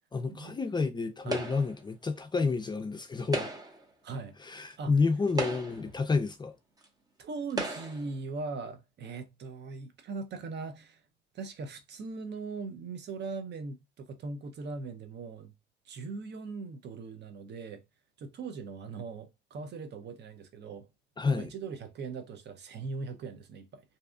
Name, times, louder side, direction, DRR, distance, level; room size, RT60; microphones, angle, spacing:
voice 1, 0.1-3.5 4.4-6.5 21.2-21.5, left 4 dB, 25° left, 0.4 m, -30 dB
sound 1, 1.3-1.8 3.2-3.9 4.7-4.8 5.3-6.0 6.8-6.9 7.5-8.1, right 2 dB, 20° right, 0.7 m, -35 dB
voice 2, 4.0-4.3 4.8-4.9 7.2-11.0 11.3-15.5 15.9-17.8 18.2-20.9 21.3-23.8, right 4 dB, 60° right, 0.6 m, -40 dB
2.6 x 2.2 x 2.4 m
cardioid pair, 90°, 20 cm